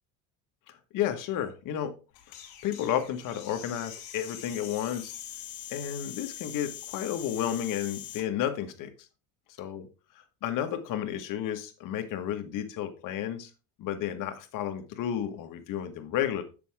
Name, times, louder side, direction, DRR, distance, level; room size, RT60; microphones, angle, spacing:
voice 1, 0.7-1.9 2.6-5.1 5.7-8.9 9.6-9.8 10.4-13.5 13.8-16.4, left 10 dB, 60° left, 7 dB, 1.6 m, -32 dB
sound 1, 2.1-8.3, left 11 dB, 85° left, 2.6 m, -43 dB
7.7 x 6.9 x 3.6 m, 0.32 s
cardioid pair, 130°, 35 cm